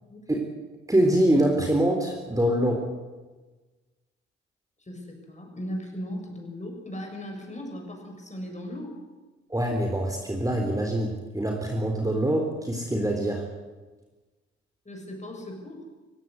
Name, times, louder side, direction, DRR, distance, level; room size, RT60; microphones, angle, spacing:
voice 1, 0.9-2.8 9.5-13.4, right 1 dB, 10° right, 1 dB, 3.7 m, -24 dB
voice 2, 4.8-9.0 14.9-15.9, equal, 20° left, 2 dB, 7.2 m, -37 dB
20.5 x 16.5 x 8.1 m, 1.2 s
figure-of-eight pair, 45°, 33 cm